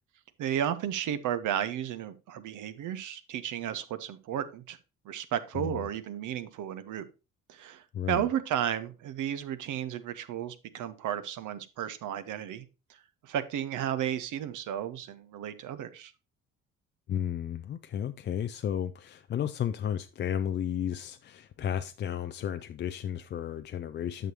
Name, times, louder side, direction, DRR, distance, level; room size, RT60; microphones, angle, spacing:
voice 1, 0.4-4.8 5.0-7.1 7.5-16.1, right 10 dB, 50° right, 0.7 m, -33 dB
voice 2, 7.9-8.3 17.1-24.3, left 9 dB, 30° left, 0.4 m, -33 dB
9.1 x 6.0 x 2.9 m
hypercardioid pair, 50°, 38 cm